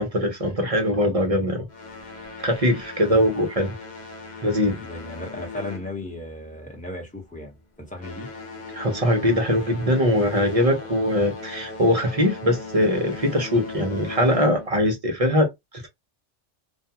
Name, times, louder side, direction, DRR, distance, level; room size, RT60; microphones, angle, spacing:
voice 1, 0.0-1.7 2.4-3.7 4.4-4.8 8.7-15.9, left 1 dB, 45° right, 0.5 m, -22 dB
sound 1, 1.7-6.6 6.9-7.2 7.8-14.8, left 3 dB, 45° left, 0.7 m, -38 dB
voice 2, 4.8-8.3, left 2 dB, 5° left, 0.8 m, -36 dB
2.4 x 2.2 x 2.7 m
omnidirectional pair, 1.3 m